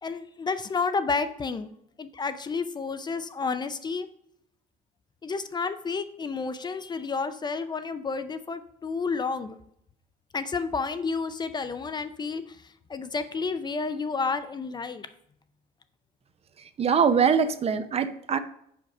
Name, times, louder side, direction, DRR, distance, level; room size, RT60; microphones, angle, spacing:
voice 1, 0.0-1.7 2.0-4.1 5.2-9.6 10.3-12.6 12.9-15.1, left 4 dB, 25° left, 11 dB, 0.4 m, -30 dB
voice 2, 16.8-18.4, right 6 dB, 35° right, 11 dB, 0.5 m, -23 dB
5.0 x 4.6 x 6.0 m, 0.71 s
cardioid pair, 110°, 17 cm